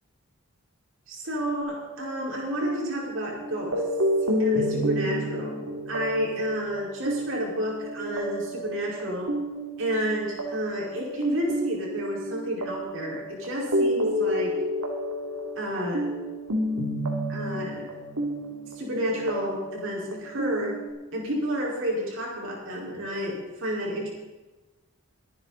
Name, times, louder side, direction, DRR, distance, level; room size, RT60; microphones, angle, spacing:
voice 1, 1.1-3.8 4.4-9.3 9.8-14.6 15.5-16.1 17.3-17.9 18.7-20.8 21.1-24.1, equal, 60° right, -3 dB, 4.8 m, -30 dB
sound 1, 1.6-20.9, equal, 85° right, 2.8 m, -30 dB
23.0 x 9.9 x 4.1 m, 1.1 s
head